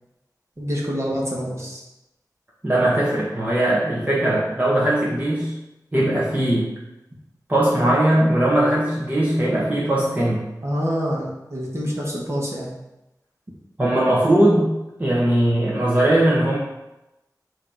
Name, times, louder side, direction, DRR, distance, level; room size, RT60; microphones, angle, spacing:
voice 1, 0.6-1.8 10.6-12.7, equal, 40° right, -4 dB, 1.8 m, -26 dB
voice 2, 2.6-5.5 5.9-6.7 7.5-10.5 13.8-14.7 15.0-16.6, right 1 dB, 25° right, -6 dB, 1.5 m, -19 dB
8.0 x 3.1 x 5.1 m, 0.95 s
wide cardioid pair, 70°, 7 cm